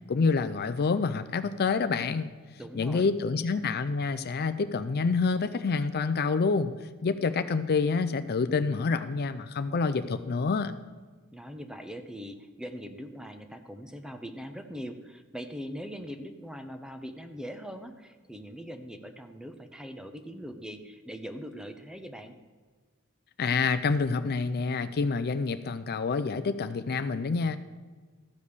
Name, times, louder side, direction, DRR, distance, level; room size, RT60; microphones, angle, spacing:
voice 1, 0.1-2.3 2.7-10.7 23.4-27.6, left 4 dB, 45° left, 12 dB, 0.4 m, -27 dB
voice 2, 2.6-3.1 11.3-22.4, equal, 5° right, 7 dB, 0.7 m, -41 dB
14.0 x 5.2 x 6.6 m, 1.5 s
head